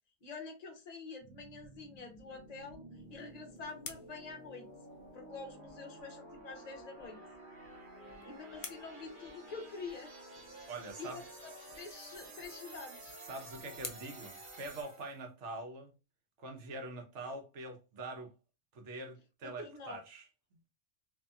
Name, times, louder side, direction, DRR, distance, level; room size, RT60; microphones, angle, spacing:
voice 1, 0.2-4.7 5.1-7.2 8.2-10.1 11.0-11.2 11.8-13.2 19.4-20.0, left 4 dB, 45° left, 0.6 m, -47 dB
sound 1, 1.2-15.2, right 2 dB, 50° right, 0.9 m, -52 dB
sound 2, 2.9-5.4 7.5-10.0 12.2-15.3, left 6 dB, 75° left, 0.9 m, -53 dB
voice 2, 10.7-11.2 13.2-15.9 16.4-18.3 18.7-20.3, right 2 dB, 75° right, 1.0 m, -44 dB
2.6 x 2.6 x 2.2 m
omnidirectional pair, 1.2 m